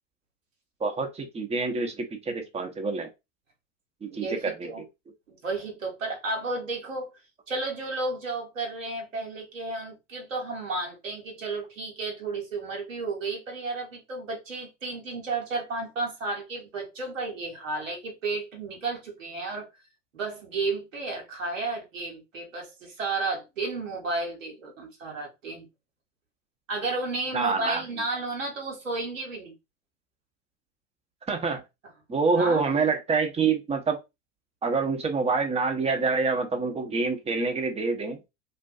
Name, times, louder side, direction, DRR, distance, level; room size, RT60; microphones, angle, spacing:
voice 1, 0.8-3.1 4.0-4.7 27.3-27.8 31.3-31.6 32.1-34.0 34.6-38.2, right 4 dB, 15° right, 0.7 m, -26 dB
voice 2, 4.1-4.8 5.3-7.1 7.5-19.7 20.1-25.7 26.7-29.5 32.4-32.6, right 3 dB, 90° right, 1.0 m, -32 dB
2.5 x 2.2 x 2.4 m
hypercardioid pair, 80°, 37 cm